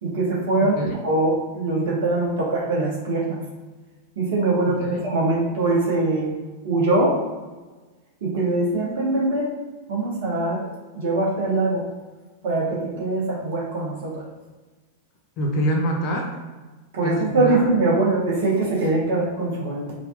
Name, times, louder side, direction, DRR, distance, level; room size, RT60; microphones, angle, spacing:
voice 1, 0.0-3.4 4.2-6.3 6.6-7.2 8.2-9.5 9.9-10.7 10.9-11.8 12.4-14.2 16.9-19.9, right 2 dB, 55° right, -3 dB, 1.2 m, -22 dB
voice 2, 4.6-5.0 15.4-16.4 17.0-17.6, right 1 dB, 40° left, 2 dB, 0.7 m, -25 dB
4.8 x 2.8 x 2.4 m, 1.2 s
figure-of-eight pair, 90°, 0 cm